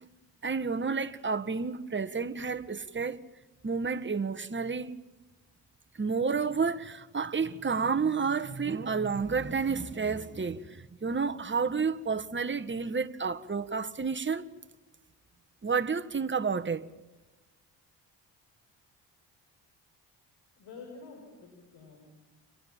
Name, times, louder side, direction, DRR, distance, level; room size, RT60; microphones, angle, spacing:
voice 1, 0.4-3.2 3.6-4.9 6.0-14.4 15.6-16.8, right 5 dB, 25° right, 1.7 m, -30 dB
voice 2, 20.6-22.1, left 4 dB, 65° left, 7.1 m, -49 dB
30.0 x 26.5 x 7.5 m
hypercardioid pair, 50°, 48 cm